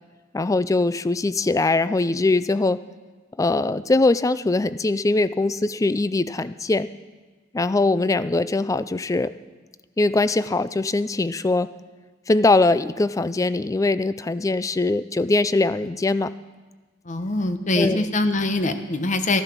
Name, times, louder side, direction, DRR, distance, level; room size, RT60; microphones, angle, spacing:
voice 1, 0.3-2.8 3.4-6.9 7.5-9.3 10.0-11.7 12.3-16.3 17.8-18.1, left 2 dB, 15° left, 15 dB, 0.3 m, -21 dB
voice 2, 17.0-19.4, left 2 dB, 40° left, 8 dB, 0.9 m, -23 dB
14.0 x 11.5 x 6.0 m, 1.3 s
head